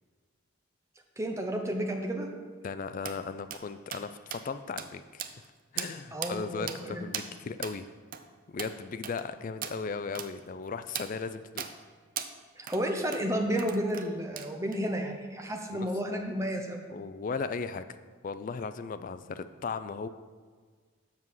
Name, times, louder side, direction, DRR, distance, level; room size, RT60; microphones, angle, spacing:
voice 1, 1.2-2.3 6.1-7.1 12.6-16.8, equal, 15° right, 3 dB, 0.8 m, -32 dB
voice 2, 2.6-5.2 5.7-7.8 8.5-11.7 15.7-15.9 16.9-18.0 18.2-20.1, left 5 dB, 40° left, 12 dB, 0.3 m, -37 dB
sound 1, 3.0-3.2 3.5-3.6 3.9-4.1 4.3-4.4 4.8-4.9 5.2-5.5 5.8-5.9 6.2-6.3 6.7-6.8 7.1-7.3 7.6-7.8 8.1-8.2 8.6-8.7 9.0-9.2 9.6-9.8 10.1-10.3 10.9-11.1 11.6-11.7 12.2-12.3 12.7-12.8 13.1-13.2 13.6-14.1 14.4-14.8, right 9 dB, 45° right, 0.5 m, -37 dB
7.3 x 6.3 x 5.6 m, 1.5 s
head